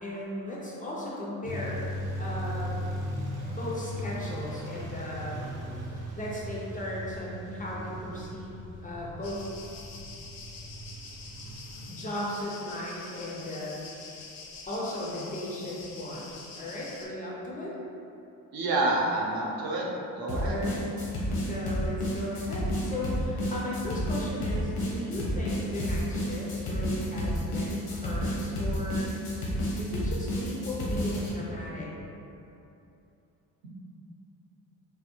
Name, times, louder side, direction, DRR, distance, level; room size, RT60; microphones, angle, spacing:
voice 1, 0.0-2.8 3.5-5.5 6.2-8.6 8.8-9.5 10.0-10.1 11.9-14.1 14.7-17.7 20.4-20.8 21.4-29.1 29.8-31.9, left 1 dB, 25° left, -5 dB, 0.3 m, -36 dB
sound 1, 1.4-11.9, equal, 45° right, 0.7 m, -37 dB
sound 2, 9.2-17.1, left 4 dB, 70° left, 0.6 m, -46 dB
voice 2, 18.5-19.9 20.1-20.6, right 2 dB, 80° right, -3 dB, 0.6 m, -28 dB
sound 3, 20.3-31.3, equal, 90° left, 0.9 m, -30 dB
3.3 x 2.3 x 2.9 m, 2.8 s
cardioid pair, 160°, 36 cm